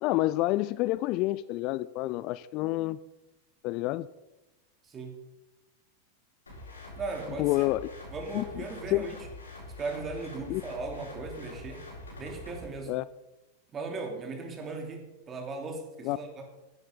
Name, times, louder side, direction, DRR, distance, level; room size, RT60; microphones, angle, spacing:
voice 1, 0.0-3.0 3.6-4.1 7.4-7.9 8.3-9.0 10.5-10.6 12.9-13.1 16.0-16.2, left 18 dB, 40° left, 17 dB, 0.4 m, -28 dB
voice 2, 4.8-5.2 7.0-7.6 8.1-9.2 9.8-11.8 12.2-12.9 13.7-16.3, right 3 dB, 25° right, 3 dB, 3.1 m, -37 dB
sound 1, 6.5-12.7, left 2 dB, 75° left, 5.4 m, -45 dB
15.0 x 11.5 x 4.1 m, 1.0 s
figure-of-eight pair, 90°, 0 cm